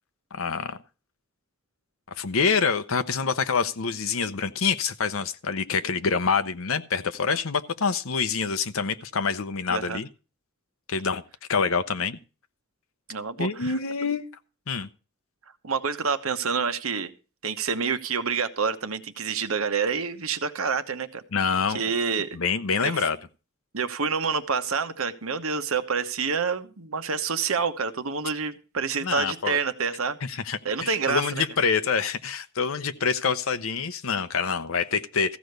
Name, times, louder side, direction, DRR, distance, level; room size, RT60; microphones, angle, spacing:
voice 1, 0.3-0.8 2.2-10.1 10.9-11.2 11.5-12.2 13.4-14.3 14.7-14.9 21.3-21.8 22.3-23.2 29.0-29.6 30.3-35.4, left 5 dB, 85° left, 0.8 m, -26 dB
voice 2, 9.7-10.0 13.1-13.8 15.6-17.1 17.4-21.2 21.7-22.3 22.8-23.1 23.7-30.2 30.6-31.4, right 5 dB, 90° right, 1.1 m, -28 dB
15.0 x 5.1 x 8.0 m
head